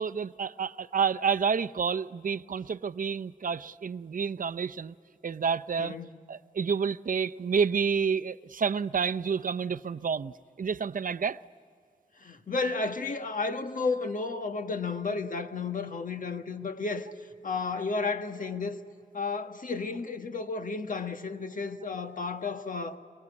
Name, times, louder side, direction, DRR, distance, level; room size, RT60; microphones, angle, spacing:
voice 1, 0.0-4.9 5.2-5.9 6.3-11.4, right 6 dB, 65° right, 0.6 m, -29 dB
voice 2, 5.8-6.1 12.2-17.1 17.4-18.8 19.1-23.0, left 4 dB, 65° left, 1.5 m, -32 dB
24.5 x 24.0 x 9.7 m
wide cardioid pair, 85°, 15 cm